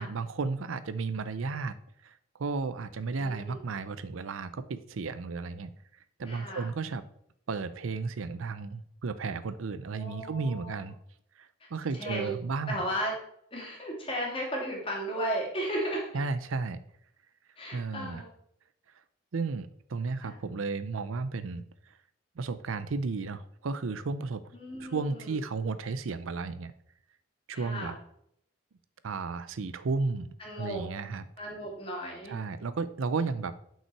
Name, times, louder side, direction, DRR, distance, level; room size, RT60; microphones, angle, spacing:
voice 1, 0.0-1.7 2.0-2.1 2.4-5.7 6.2-7.0 7.5-11.0 11.4-12.8 16.1-16.8 17.7-18.2 19.3-21.6 22.4-24.4 24.8-26.7 27.5-28.0 29.0-30.3 30.6-31.2 32.3-33.5, right 4 dB, 85° right, 14 dB, 0.5 m, -33 dB
voice 2, 3.2-3.6 6.2-6.7 9.9-10.8 11.6-11.7 12.0-12.3 12.7-13.1 13.5-16.1 17.6-18.3 20.2-20.4 24.5-25.4 27.5-28.0 30.4-30.8 31.4-32.4, equal, 25° left, -2 dB, 2.2 m, -35 dB
6.0 x 5.6 x 4.6 m, 0.71 s
head